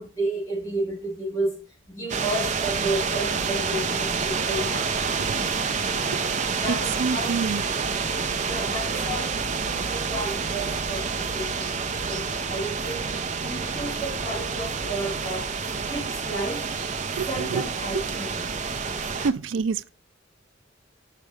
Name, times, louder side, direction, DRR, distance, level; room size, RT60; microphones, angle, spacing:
voice 1, 0.0-5.8 6.6-7.4 8.5-11.7 12.1-15.5 15.9-16.7 17.2-18.5, right 1 dB, 15° left, 3.9 m, -32 dB
sound 1, 2.1-19.3, right 5 dB, 40° right, 0.7 m, -28 dB
voice 2, 7.0-7.6 17.2-17.6 19.1-19.9, right 5 dB, 80° right, 0.4 m, -27 dB
6.6 x 6.1 x 5.0 m
head